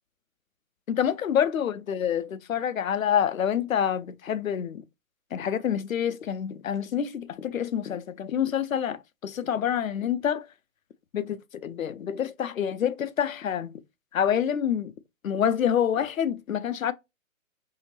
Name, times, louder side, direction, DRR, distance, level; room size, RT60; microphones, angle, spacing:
voice 1, 0.9-4.8 5.3-10.5 11.1-13.7 14.1-14.9 15.2-16.9, left 9 dB, 70° left, 0.6 m, -27 dB
5.6 x 2.8 x 2.8 m
figure-of-eight pair, 125°, 42 cm